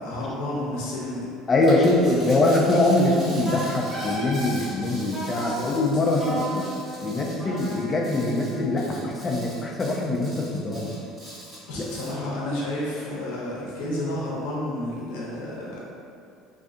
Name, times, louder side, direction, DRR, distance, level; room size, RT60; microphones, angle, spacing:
voice 1, 0.0-1.3 5.3-5.7 6.2-6.4 6.9-7.0 11.7-15.8, left 1 dB, 80° left, -6 dB, 0.7 m, -31 dB
voice 2, 1.5-6.4 7.0-10.9, left 2 dB, 30° left, -1 dB, 0.4 m, -23 dB
sound 1, 1.6-12.3, equal, 25° right, 1.3 m, -43 dB
Wind instrument woodwind instrument, 3.5-4.6 5.1-5.6 6.2-9.2, equal, 10° left, 1.2 m, -35 dB
2.5 x 2.3 x 2.5 m, 2.5 s
supercardioid pair, 90°, 0 cm